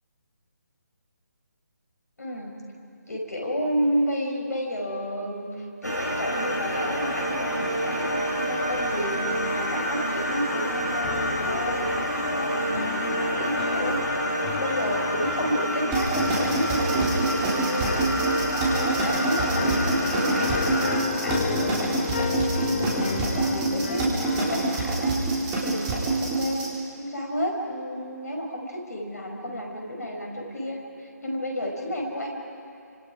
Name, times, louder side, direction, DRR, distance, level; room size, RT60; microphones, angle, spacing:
voice 1, 2.2-2.5 3.1-14.1 14.6-22.1 22.3-26.7 27.0-32.3, equal, 65° left, 1 dB, 5.3 m, -31 dB
sound 1, 5.8-21.0, equal, 80° left, 4.4 m, -28 dB
sound 2, 11.0-24.7, left 7 dB, 35° left, 1.3 m, -33 dB
sound 3, 15.9-26.7, right 3 dB, 15° right, 3.6 m, -26 dB
27.5 x 25.5 x 5.0 m, 2.6 s
figure-of-eight pair, 145°, 9 cm